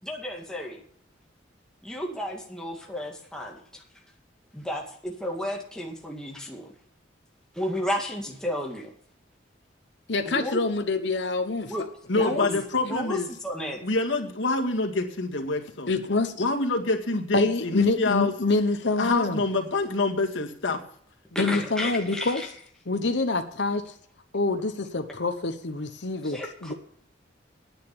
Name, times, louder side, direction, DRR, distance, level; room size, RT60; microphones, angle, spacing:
voice 1, 0.0-0.8 1.8-3.8 4.5-6.7 7.5-8.9 10.3-10.6 11.7-11.8 12.2-12.5 12.9-13.8 21.3-22.5 26.2-26.7, left 1 dB, 5° left, -1 dB, 2.0 m, -32 dB
voice 2, 10.1-11.7 12.1-12.6 15.8-16.3 17.3-19.4 21.4-22.4 22.9-23.9 24.3-26.7, left 3 dB, 70° left, 6 dB, 1.0 m, -26 dB
voice 3, 12.1-13.3 13.8-15.9 16.4-18.3 19.0-20.8, left 3 dB, 85° left, 3 dB, 2.0 m, -26 dB
10.5 x 8.9 x 7.0 m, 0.62 s
head